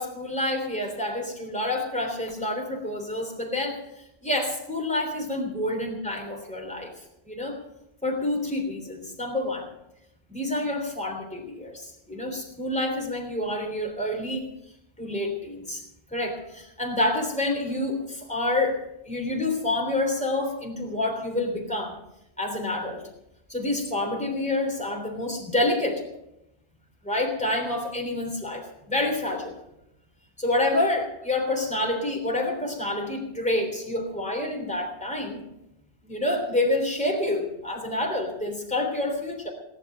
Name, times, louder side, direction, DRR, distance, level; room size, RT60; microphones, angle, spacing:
voice 1, 0.0-3.8 4.2-6.9 7.2-7.6 8.0-9.7 10.3-14.4 15.0-15.8 16.1-18.8 19.0-22.0 22.4-23.0 23.5-26.0 27.0-29.6 30.4-35.4 36.0-39.5, left 1 dB, 5° left, 1 dB, 3.3 m, -28 dB
19.5 x 10.5 x 6.7 m, 0.86 s
omnidirectional pair, 1.1 m